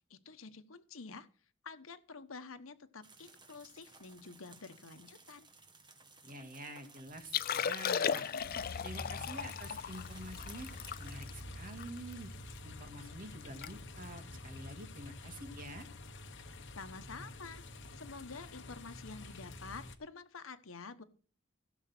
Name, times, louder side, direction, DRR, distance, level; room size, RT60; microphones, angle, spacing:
voice 1, 0.1-1.3 1.6-5.5 16.7-17.7 17.9-21.0, left 4 dB, 85° left, 10 dB, 1.2 m, -49 dB
sound 1, 3.0-11.2, right 4 dB, 20° right, 1.6 m, -59 dB
voice 2, 6.2-8.3 8.8-10.7 11.0-12.3 12.6-15.9, right 1 dB, 45° right, 5 dB, 2.2 m, -48 dB
Liquid, 7.2-12.6 13.0-13.1 13.4-13.7 14.0-14.2 14.8-15.1 16.5-16.6, left 7 dB, 45° left, 0.5 m, -37 dB
sound 2, 8.4-20.0, left 2 dB, 65° left, 1.4 m, -48 dB
16.5 x 7.3 x 4.4 m, 0.41 s
head